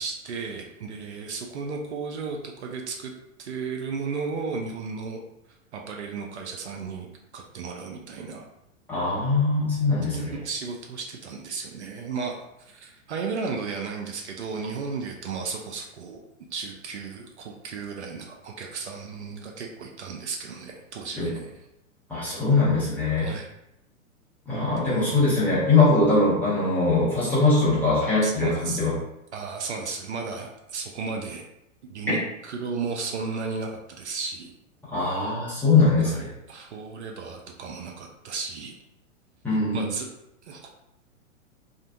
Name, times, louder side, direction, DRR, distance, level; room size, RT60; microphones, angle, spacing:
voice 1, 0.0-3.1 3.4-5.2 5.7-7.1 7.3-8.5 10.1-16.2 16.5-21.6 23.1-23.5 24.9-25.3 28.2-28.9 29.3-31.4 31.8-34.5 36.0-38.8 39.7-40.1 40.5-40.7, right 4 dB, 55° right, 1 dB, 0.5 m, -34 dB
voice 2, 8.9-10.3 21.2-21.3 22.1-23.3 24.5-28.9 34.9-36.3 39.4-39.9, left 3 dB, 5° left, -10 dB, 0.6 m, -22 dB
2.5 x 2.1 x 2.5 m, 0.84 s
figure-of-eight pair, 105°, 40 cm